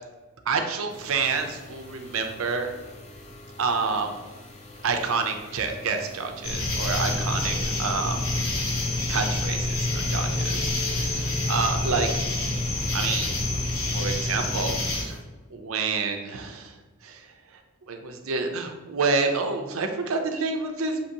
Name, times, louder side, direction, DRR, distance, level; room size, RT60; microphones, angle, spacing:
voice 1, 0.5-2.7 3.6-4.1 4.8-8.2 9.1-12.1 12.4-12.7 12.9-13.4 13.6-15.2 15.5-16.8 17.0-17.6 17.9-21.0, right 4 dB, 90° right, 5 dB, 0.6 m, -28 dB
sound 1, 0.9-15.2, left 1 dB, 35° left, 0.5 m, -46 dB
sound 2, 6.4-15.0, left 2 dB, 85° left, 0.8 m, -27 dB
5.8 x 2.9 x 2.8 m, 1.2 s
head